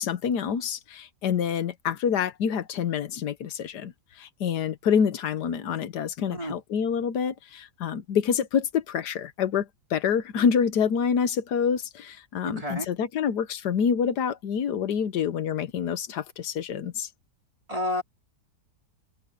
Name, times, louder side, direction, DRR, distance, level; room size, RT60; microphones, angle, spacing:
voice 1, 0.0-3.9 4.2-17.1, left 7 dB, 90° left, 1.6 m, -27 dB
voice 2, 12.4-12.9 17.7-18.0, left 1 dB, 20° right, 4.5 m, -30 dB
open air
omnidirectional pair, 1.7 m